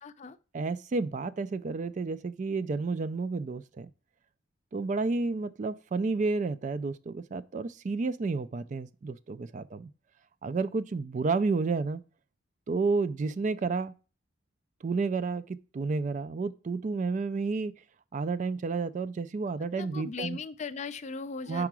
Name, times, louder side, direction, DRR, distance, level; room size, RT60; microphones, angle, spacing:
voice 1, 0.0-0.4 19.6-21.7, left 4 dB, 35° left, 0.4 m, -38 dB
voice 2, 0.5-3.9 4.7-9.9 10.4-12.1 12.7-13.9 14.8-17.8 18.1-20.4 21.5-21.7, right 4 dB, 40° right, 0.3 m, -31 dB
4.9 x 4.6 x 6.0 m
head